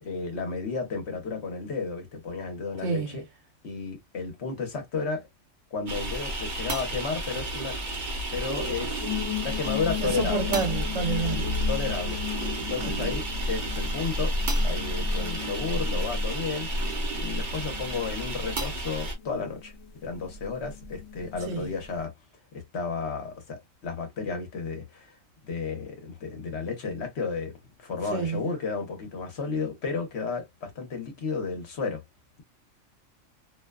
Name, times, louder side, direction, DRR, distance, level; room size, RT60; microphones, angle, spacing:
voice 1, 0.0-3.2 3.6-5.3 5.7-9.1 9.4-10.5 11.3-14.4 14.6-16.7 17.2-19.7 20.0-22.1 22.5-25.2 25.5-32.0, left 4 dB, 60° left, 1.1 m, -33 dB
voice 2, 2.8-3.2 10.0-11.6 12.8-13.1 21.5-21.7 28.1-28.5, right 5 dB, 70° right, 1.2 m, -29 dB
sound 1, 5.9-19.1, equal, 40° right, 0.9 m, -30 dB
sound 2, 9.0-22.1, left 12 dB, 90° left, 1.1 m, -38 dB
2.7 x 2.2 x 2.2 m
omnidirectional pair, 1.4 m